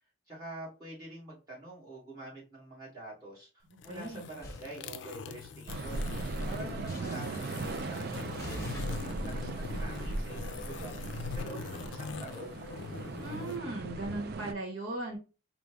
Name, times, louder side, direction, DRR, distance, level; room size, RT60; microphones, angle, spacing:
voice 1, 0.3-12.6, right 2 dB, 20° right, -7 dB, 2.5 m, -47 dB
sound 1, 3.7-13.6, left 5 dB, 65° left, 0.4 m, -42 dB
voice 2, 3.9-4.3 13.2-15.2, right 2 dB, 80° right, 0 dB, 1.4 m, -38 dB
sound 2, 4.4-4.7 6.9-7.6 8.3-10.9, equal, 15° left, 1.0 m, -43 dB
sound 3, 5.7-14.5, right 3 dB, 50° right, 0.4 m, -38 dB
4.9 x 2.5 x 3.2 m, 0.32 s
head